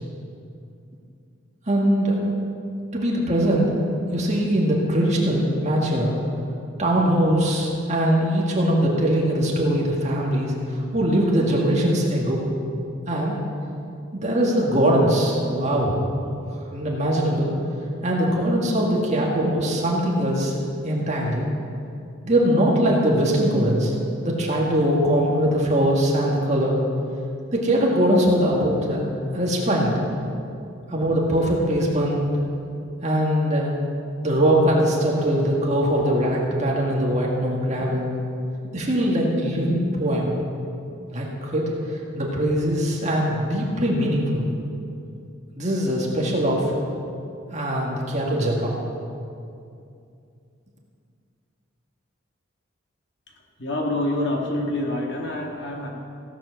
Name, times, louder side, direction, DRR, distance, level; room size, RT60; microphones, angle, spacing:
voice 1, 1.7-2.2 2.9-3.7 4.1-6.2 6.8-12.4 13.1-13.4 14.1-16.0 16.7-17.5 18.0-20.5 20.8-21.5 22.2-23.9 24.2-26.8 27.5-29.9 30.9-32.3 33.0-33.7 34.2-38.1 38.7-40.3 41.1-44.4 45.5-46.7 47.5-48.7, equal, 35° right, -3 dB, 1.9 m, -21 dB
voice 2, 53.6-55.9, left 1 dB, 55° left, 0 dB, 1.8 m, -26 dB
16.5 x 7.6 x 6.3 m, 2.6 s
head